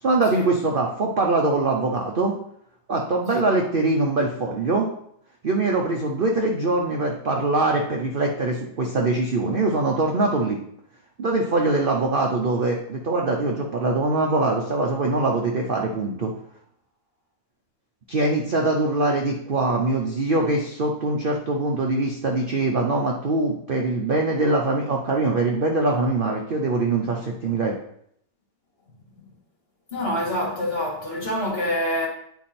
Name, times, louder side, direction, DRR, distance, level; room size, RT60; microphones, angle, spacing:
voice 1, 0.0-2.3 2.9-4.9 5.4-10.6 11.2-16.3 18.1-27.8, right 2 dB, 60° right, 0.5 m, -23 dB
voice 2, 29.9-32.1, equal, 35° left, 1.8 m, -26 dB
10.0 x 3.5 x 4.3 m
omnidirectional pair, 1.9 m